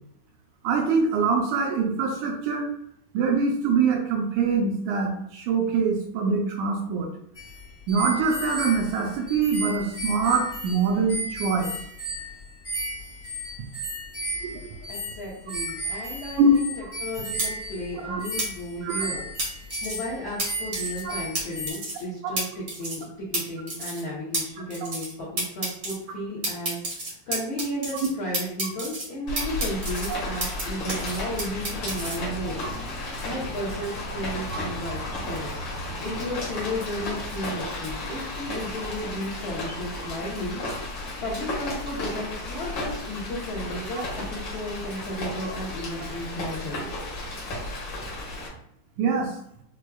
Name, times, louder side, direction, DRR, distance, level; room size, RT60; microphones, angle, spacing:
voice 1, 0.6-2.7 3.1-7.1 7.9-11.7 14.4-14.6 16.4-16.5 18.0-18.2 18.8-19.1 21.1-21.2 22.2-22.3 30.1-30.2 34.5-34.6 49.0-49.3, right 4 dB, 80° right, 2 dB, 1.9 m, -24 dB
sound 1, 7.3-21.7, right 1 dB, 40° left, 0.9 m, -34 dB
voice 2, 14.9-16.7 17.0-19.3 19.6-32.8 33.2-40.6 41.0-46.9, equal, 80° left, -8 dB, 1.1 m, -34 dB
sound 2, 17.4-17.5 18.4-18.5 19.4-20.0 20.4-20.5 20.7-21.0 21.3-21.4 21.7-22.0 22.4-22.5 22.7-23.0 23.3-23.4 23.7-24.0 24.3-24.4 24.7-25.1 25.4-25.9 26.4-28.1 28.3-29.0 29.4-30.6 30.9-32.2, right 2 dB, 55° right, 0.9 m, -30 dB
Rain, 29.3-48.5, left 2 dB, 60° left, 1.2 m, -33 dB
6.1 x 2.3 x 2.3 m, 0.72 s
omnidirectional pair, 3.5 m